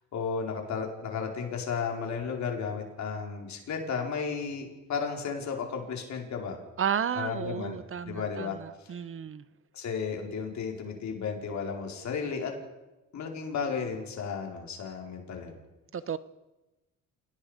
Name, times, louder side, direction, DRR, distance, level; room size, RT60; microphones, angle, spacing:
voice 1, 0.1-6.6 7.1-9.0 9.7-12.5 13.1-15.5, left 5 dB, 65° left, 2 dB, 4.9 m, -34 dB
voice 2, 6.8-9.4 15.9-16.2, right 8 dB, 45° right, 16 dB, 1.0 m, -32 dB
28.0 x 18.5 x 5.2 m, 1.0 s
cardioid pair, 90°, 30 cm